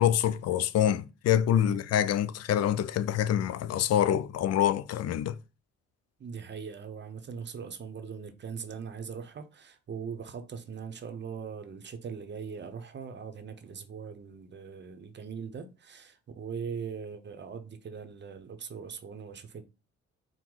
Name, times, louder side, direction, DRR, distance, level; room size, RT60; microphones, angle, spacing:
voice 1, 0.0-5.3, left 10 dB, 55° left, 0.4 m, -26 dB
voice 2, 6.2-19.6, right 6 dB, 35° right, 0.7 m, -40 dB
4.5 x 2.1 x 3.8 m
cardioid pair, 90°, 30 cm